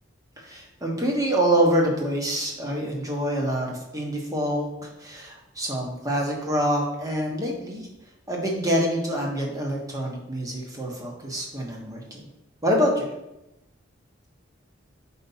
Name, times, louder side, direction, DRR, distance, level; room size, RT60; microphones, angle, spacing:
voice 1, 0.4-7.9 8.3-12.2 12.6-13.1, equal, 15° right, -1 dB, 1.2 m, -26 dB
5.0 x 4.2 x 5.6 m, 0.90 s
head